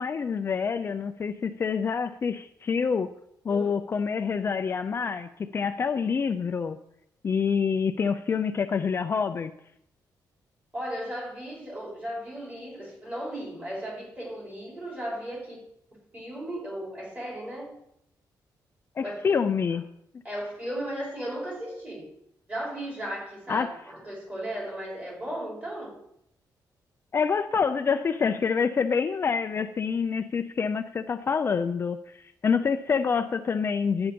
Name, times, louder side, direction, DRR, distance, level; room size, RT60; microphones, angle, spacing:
voice 1, 0.0-3.1 3.4-6.8 7.2-9.5 19.0-19.8 23.5-23.7 27.1-34.1, left 6 dB, 35° left, 8 dB, 0.5 m, -27 dB
voice 2, 10.7-15.6 16.1-17.7 19.0-19.4 20.2-22.1 22.5-25.9, right 1 dB, 20° right, -4 dB, 5.2 m, -36 dB
12.0 x 8.8 x 5.2 m, 0.77 s
wide cardioid pair, 160°, 7 cm